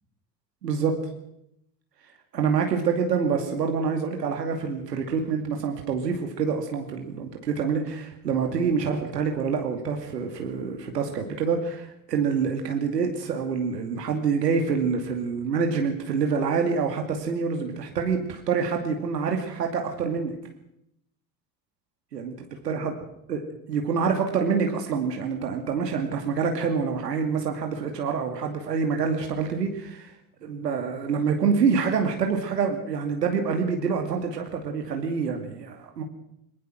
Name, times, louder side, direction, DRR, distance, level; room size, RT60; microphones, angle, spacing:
voice 1, 0.6-1.1 2.3-20.3 22.1-22.4 22.6-22.9 23.3-23.4 23.7-30.1 30.4-36.0, right 5 dB, 80° right, 4 dB, 2.5 m, -26 dB
21.0 x 21.0 x 6.2 m, 0.78 s
figure-of-eight pair, 60°, 48 cm